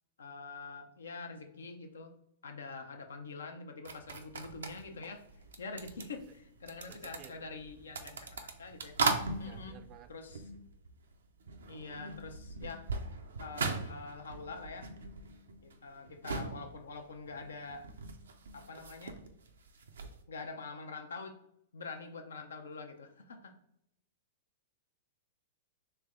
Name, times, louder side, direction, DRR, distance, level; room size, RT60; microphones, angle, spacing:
voice 1, 0.2-2.1 2.4-5.2 5.6-8.9 9.4-9.8 10.1-10.5 11.7-12.9 13.4-14.9 15.6-17.9 18.5-19.2 20.3-21.4 21.7-23.6, left 4 dB, 85° left, 5 dB, 0.6 m, -45 dB
sound 1, 3.8-11.1 11.4-20.2, right 4 dB, 85° right, 0.6 m, -40 dB
voice 2, 6.9-7.3 7.9-8.0 9.4-10.1, right 9 dB, 35° right, 9 dB, 0.4 m, -55 dB
3.4 x 3.3 x 3.7 m, 0.76 s
hypercardioid pair, 120°, 0 cm